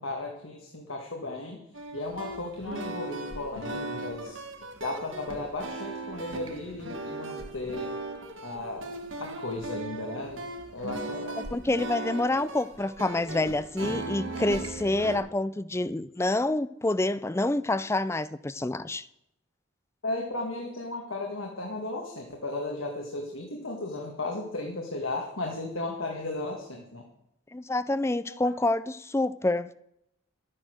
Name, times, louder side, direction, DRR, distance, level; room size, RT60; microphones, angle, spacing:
voice 1, 0.0-1.6 1.9-4.4 4.8-7.9 8.4-8.9 9.2-10.4 10.7-11.4 20.0-27.0 28.3-28.4, left 2 dB, 75° left, 1.9 m, -35 dB
sound 1, 1.7-15.2, right 2 dB, 65° right, 1.7 m, -38 dB
voice 2, 11.4-19.1 27.5-29.7, left 2 dB, 15° left, 0.4 m, -27 dB
12.5 x 9.8 x 6.5 m
head